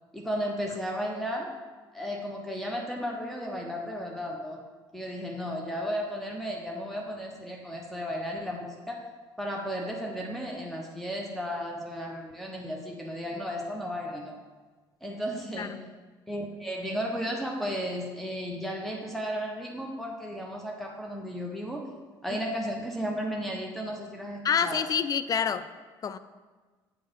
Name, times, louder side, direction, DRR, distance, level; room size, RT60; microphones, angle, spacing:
voice 1, 0.1-1.5 1.9-4.6 4.9-9.1 9.4-14.4 15.0-15.8 16.3-21.9 22.2-24.9, equal, ahead, -1 dB, 1.1 m, -34 dB
voice 2, 24.4-25.7 26.0-26.2, left 7 dB, 30° left, 13 dB, 0.5 m, -27 dB
8.1 x 5.4 x 5.3 m, 1.3 s
figure-of-eight pair, 55°, 13 cm